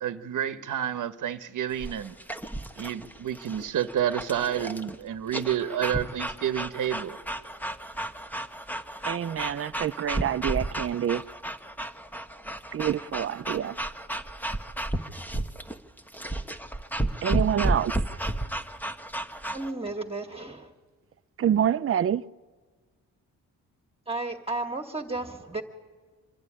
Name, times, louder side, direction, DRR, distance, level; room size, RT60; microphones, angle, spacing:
voice 1, 0.0-2.2 2.8-7.2, right 10 dB, 65° right, 1.1 m, -29 dB
sound 1, 1.7-19.7, right 1 dB, 5° left, 1.2 m, -33 dB
voice 2, 9.0-11.2 12.7-13.8 17.2-18.0 21.4-22.2, right 9 dB, 40° right, 0.6 m, -27 dB
voice 3, 19.5-20.7 24.1-25.6, right 2 dB, 15° right, 1.9 m, -33 dB
26.0 x 11.5 x 9.9 m
cardioid pair, 70°, 34 cm